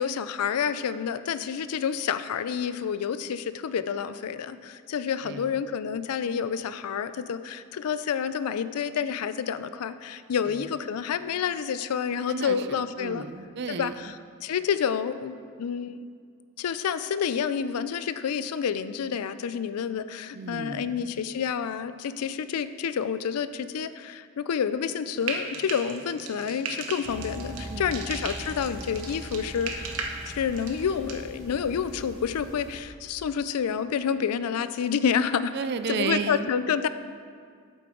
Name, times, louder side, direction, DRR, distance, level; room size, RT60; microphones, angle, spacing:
voice 1, 0.0-13.2 13.7-14.1 14.4-16.1 16.6-30.0 30.3-35.5 35.9-36.9, left 7 dB, 85° left, 13 dB, 0.4 m, -29 dB
voice 2, 5.2-5.6 10.5-10.6 12.3-14.0 20.3-21.1 27.5-28.1 35.5-36.5, right 5 dB, 45° right, 11 dB, 0.3 m, -33 dB
Frying (food), 25.2-31.2, right 4 dB, 75° right, 0.9 m, -37 dB
sound 1, 27.0-32.8, equal, 65° left, 2.0 m, -41 dB
8.5 x 7.7 x 3.8 m, 2.1 s
head